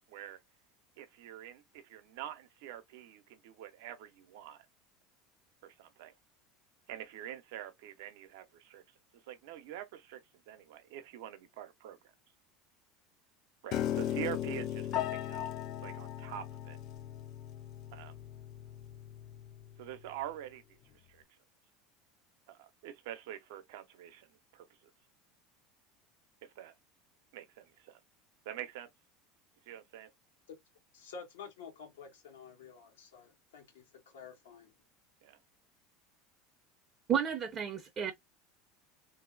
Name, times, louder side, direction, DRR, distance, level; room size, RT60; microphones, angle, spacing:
voice 1, 0.1-0.4 1.0-4.7 5.6-6.1 6.9-8.8 9.1-10.2 10.5-12.0 13.6-15.5 15.8-16.8 17.9-18.1 19.8-20.8 21.1-21.2 22.5-24.6 26.6-26.7 27.3-28.0 28.5-28.9 29.7-30.1 35.2-35.4, right 12 dB, 75° right, 0.6 m, -45 dB
Piano, 13.7-19.9, left 11 dB, 55° left, 0.4 m, -38 dB
voice 2, 30.9-34.7, left 5 dB, 90° left, 1.3 m, -50 dB
voice 3, 37.1-38.1, right 8 dB, 35° right, 0.6 m, -32 dB
3.0 x 2.7 x 2.5 m
supercardioid pair, 105°, 0 cm